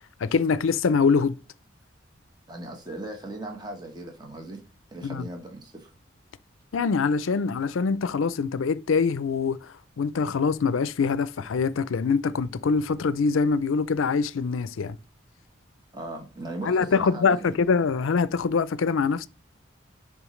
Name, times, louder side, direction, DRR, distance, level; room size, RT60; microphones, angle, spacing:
voice 1, 0.2-1.4 5.0-5.3 6.7-15.0 16.6-19.3, left 5 dB, 90° left, 0.5 m, -24 dB
voice 2, 2.5-4.6 4.9-5.9 15.9-17.6, right 1 dB, 20° right, 1.1 m, -38 dB
10.5 x 3.7 x 3.1 m
head